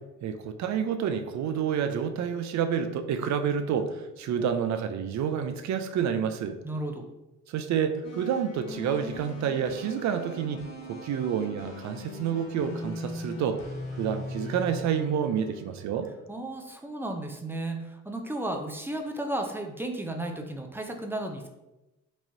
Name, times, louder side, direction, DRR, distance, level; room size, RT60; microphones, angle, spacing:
voice 1, 0.2-6.6 7.5-13.7 14.0-16.1, right 8 dB, 65° right, 8 dB, 0.5 m, -29 dB
voice 2, 6.6-7.1 16.3-21.5, right 1 dB, 5° right, 3 dB, 0.5 m, -34 dB
sound 1, 8.0-16.2, left 2 dB, 65° left, 1.2 m, -40 dB
4.5 x 2.9 x 2.6 m, 0.98 s
cardioid pair, 90°, 30 cm